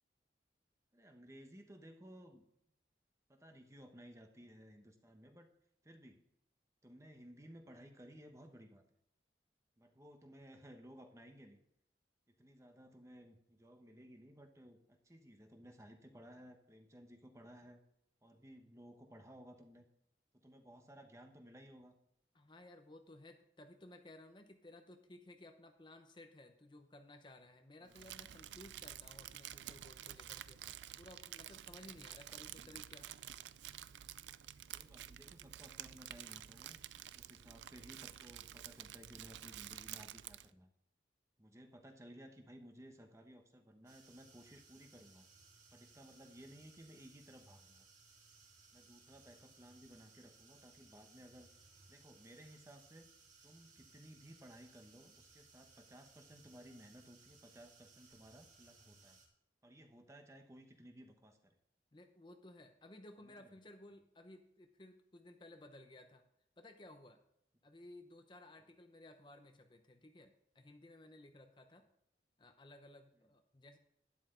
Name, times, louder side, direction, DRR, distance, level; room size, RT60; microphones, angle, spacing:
voice 1, 0.9-2.4 3.3-5.5 5.8-6.2 6.8-8.8 9.8-11.6 12.4-17.8 18.2-19.9 20.3-22.0 27.8-28.3 32.5-32.8 34.7-36.8 37.1-40.7 41.4-45.3 45.7-47.9 48.7-51.5 51.9-53.1 53.4-59.2 59.6-61.6 63.2-63.5 68.6-68.7, equal, 15° right, 5 dB, 1.1 m, -58 dB
voice 2, 22.3-30.6 31.0-33.1 61.9-66.2 66.6-67.2 67.6-71.8 72.4-73.8, left 1 dB, 25° left, 5 dB, 0.8 m, -57 dB
Crumpling crinkling, 27.9-40.5, right 12 dB, 90° right, 0.4 m, -50 dB
sound 1, 43.9-59.3, right 4 dB, 45° right, 2.4 m, -64 dB
12.0 x 10.5 x 3.8 m, 0.75 s
head